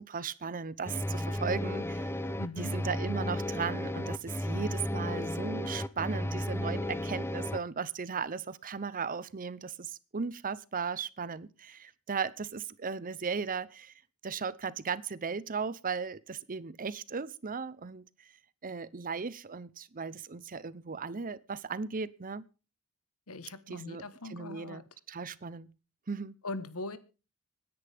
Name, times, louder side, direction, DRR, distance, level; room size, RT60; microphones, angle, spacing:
voice 1, 0.0-2.1 2.6-13.9 14.2-18.3 18.6-22.4 23.7-24.0 24.3-24.8 25.1-25.7 26.1-26.3, right 5 dB, 40° right, 0.7 m, -36 dB
sound 1, 0.8-7.6, left 1 dB, 10° left, 0.7 m, -34 dB
voice 2, 2.4-2.7 23.3-24.8 26.4-27.0, left 2 dB, 75° left, 1.4 m, -40 dB
26.0 x 10.5 x 3.5 m
head